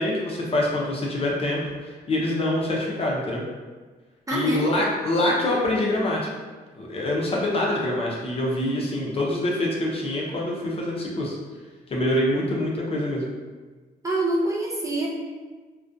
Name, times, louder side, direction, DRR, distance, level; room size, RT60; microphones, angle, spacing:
voice 1, 0.0-3.4 4.3-6.3 6.8-11.4 11.9-13.3, left 1 dB, 35° left, -3 dB, 0.6 m, -25 dB
voice 2, 4.3-4.7 14.0-15.1, right 2 dB, 20° right, -4 dB, 0.4 m, -25 dB
2.3 x 2.2 x 2.5 m, 1.4 s
cardioid pair, 95°, 16 cm